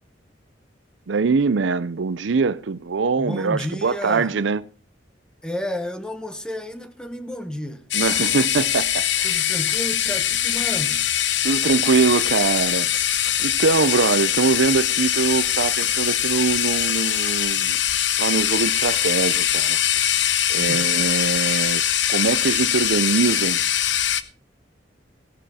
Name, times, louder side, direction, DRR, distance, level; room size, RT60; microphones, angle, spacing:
voice 1, 1.1-4.6 7.9-9.4 11.4-13.1 13.4-17.8 18.2-19.8 20.5-21.8 22.1-23.6, right 4 dB, 75° right, 0.5 m, -23 dB
voice 2, 3.2-4.3 5.4-7.8 9.2-11.1 20.5-20.8, left 1 dB, 5° left, 1.2 m, -31 dB
sound 1, 7.9-24.2, left 11 dB, 70° left, 0.9 m, -22 dB
17.0 x 10.0 x 4.2 m
head